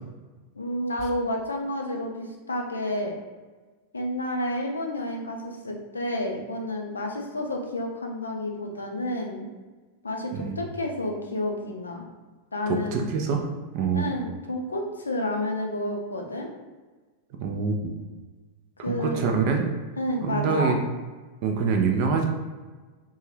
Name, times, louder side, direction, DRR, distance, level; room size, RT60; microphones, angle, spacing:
voice 1, 0.6-3.1 3.9-9.5 10.0-12.0 12.5-13.0 13.9-16.5 18.8-19.2 20.0-20.7, left 1 dB, 75° left, 1 dB, 0.4 m, -30 dB
voice 2, 10.3-10.7 12.7-13.4 13.7-14.1 17.3-17.9 18.9-19.7 20.2-20.8 21.4-22.2, right 5 dB, 45° right, 3 dB, 0.4 m, -25 dB
2.5 x 2.3 x 3.2 m, 1.3 s
figure-of-eight pair, 90°, 0 cm